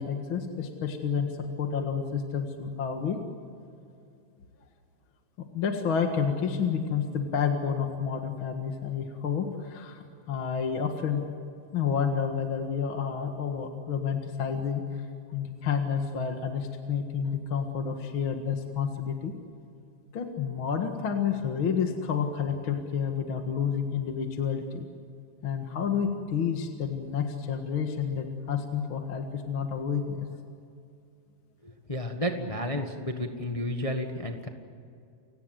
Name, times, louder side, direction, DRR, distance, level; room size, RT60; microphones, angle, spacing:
voice 1, 0.0-3.2 5.5-11.2 11.7-14.8 15.3-19.3 20.1-24.9 25.4-30.3, left 7 dB, 45° left, 4 dB, 2.2 m, -30 dB
voice 2, 31.6-34.5, left 1 dB, 30° left, 4 dB, 0.6 m, -32 dB
30.0 x 18.0 x 7.9 m, 2.5 s
omnidirectional pair, 3.6 m